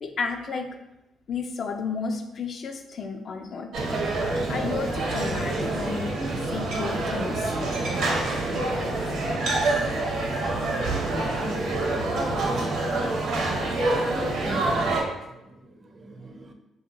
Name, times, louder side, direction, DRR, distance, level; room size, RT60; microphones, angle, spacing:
voice 1, 0.0-0.7 1.3-3.8 4.5-7.6 8.3-8.4 9.0-9.1, left 4 dB, 55° left, 5 dB, 0.3 m, -32 dB
sound 1, 3.7-15.0, right 2 dB, 75° right, 0.7 m, -26 dB
voice 2, 14.5-14.8 15.2-16.5, right 1 dB, 40° right, 5 dB, 0.4 m, -42 dB
2.7 x 2.2 x 3.9 m, 0.92 s
cardioid pair, 90°, 0 cm